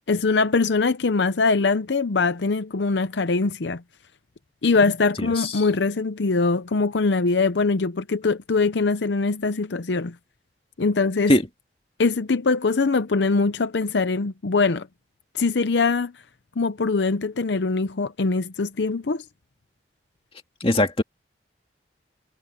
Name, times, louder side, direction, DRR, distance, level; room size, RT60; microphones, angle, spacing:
voice 1, 0.1-3.8 4.6-10.1 10.8-11.3 12.0-14.9 15.3-16.1 16.6-19.2, left 4 dB, 75° left, 0.7 m, -22 dB
voice 2, 20.6-21.0, left 1 dB, 30° left, 2.0 m, -19 dB
head